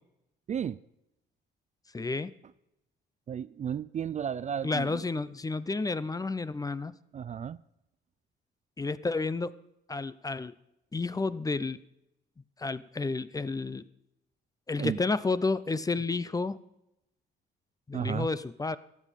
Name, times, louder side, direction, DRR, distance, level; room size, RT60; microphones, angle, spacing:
voice 1, 0.5-0.8 3.3-5.1 7.1-7.6 14.8-15.0 17.9-18.3, right 8 dB, 35° right, 0.4 m, -33 dB
voice 2, 1.9-2.3 4.6-6.9 8.8-9.5 9.9-10.5 10.9-11.8 12.6-13.8 14.7-16.6 17.9-18.8, left 3 dB, 20° left, 0.5 m, -31 dB
14.5 x 8.5 x 5.2 m
cardioid pair, 90°, 20 cm